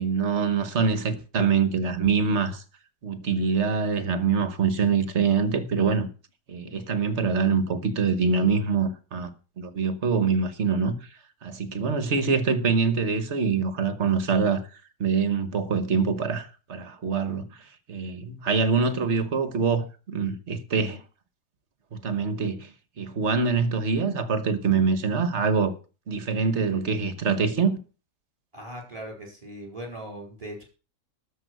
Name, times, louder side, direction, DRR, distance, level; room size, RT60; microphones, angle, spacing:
voice 1, 0.0-2.6 3.0-6.1 6.5-9.3 9.6-11.0 11.4-14.6 15.0-17.5 17.9-21.0 21.9-22.7 23.0-25.7 26.1-27.8, right 5 dB, 50° right, 1.4 m, -24 dB
voice 2, 28.5-30.6, right 1 dB, 20° right, 4.3 m, -39 dB
13.0 x 5.5 x 8.0 m
omnidirectional pair, 1.6 m